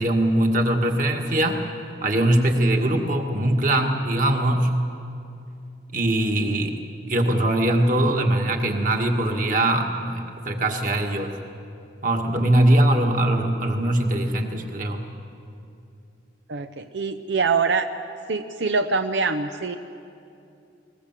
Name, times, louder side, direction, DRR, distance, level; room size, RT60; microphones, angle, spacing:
voice 1, 0.0-1.6 2.0-4.8 5.9-6.8 7.1-11.3 12.0-15.0, right 1 dB, 45° right, 3 dB, 1.9 m, -21 dB
voice 2, 16.5-17.9 18.3-19.8, right 4 dB, 85° right, 7 dB, 0.7 m, -24 dB
22.0 x 20.0 x 7.5 m, 2.6 s
head